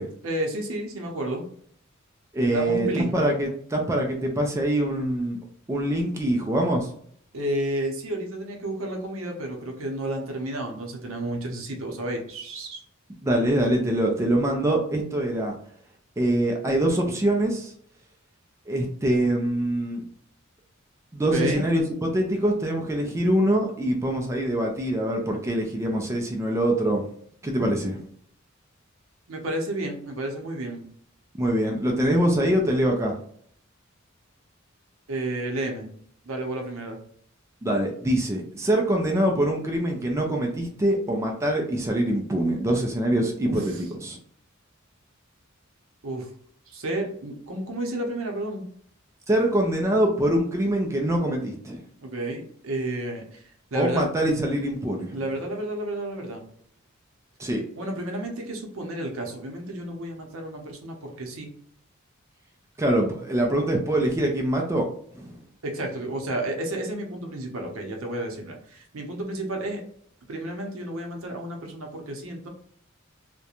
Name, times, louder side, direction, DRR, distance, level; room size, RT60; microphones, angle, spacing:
voice 1, 0.2-1.4 2.5-3.2 7.3-12.8 21.3-21.6 29.3-30.8 35.1-35.9 36.2-37.0 43.5-43.8 46.0-46.3 46.7-48.6 52.0-54.1 55.1-56.4 57.8-61.5 65.6-69.8 70.3-72.5, right 1 dB, 75° right, 2 dB, 0.6 m, -31 dB
voice 2, 2.3-5.4 5.7-6.9 13.2-15.6 16.2-17.7 18.7-20.0 21.1-27.0 27.4-28.0 31.4-33.2 37.6-44.2 49.3-51.8 53.7-55.2 57.4-57.6 62.8-64.8 65.1-65.4, right 1 dB, 15° right, 0 dB, 0.3 m, -24 dB
2.4 x 2.1 x 2.8 m, 0.62 s
head